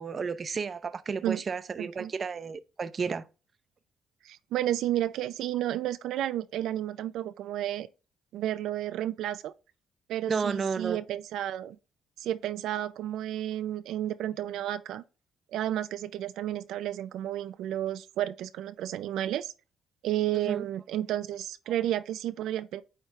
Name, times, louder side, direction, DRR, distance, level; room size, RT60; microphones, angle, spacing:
voice 1, 0.0-3.2 10.3-11.0 20.4-20.7, right 5 dB, 40° right, 0.6 m, -32 dB
voice 2, 1.8-2.1 4.2-7.9 8.3-9.5 10.1-11.8 12.2-15.0 15.5-19.5 20.0-22.8, right 12 dB, 85° right, 0.4 m, -32 dB
9.1 x 3.3 x 3.6 m
cardioid pair, 90°, 0 cm